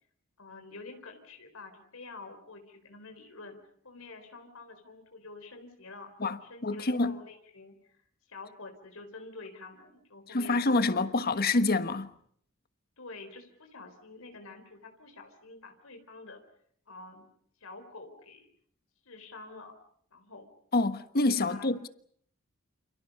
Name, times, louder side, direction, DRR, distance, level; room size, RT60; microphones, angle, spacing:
voice 1, 0.4-3.6 3.8-6.1 6.4-8.0 8.3-11.5 13.0-16.4 16.9-17.3 17.6-18.5 19.0-19.8 20.1-20.5 21.5-21.7, left 3 dB, 75° left, 4.3 m, -48 dB
voice 2, 6.2-7.2 10.3-12.1 20.7-21.9, left 2 dB, 45° left, 1.4 m, -27 dB
29.0 x 28.5 x 5.5 m
head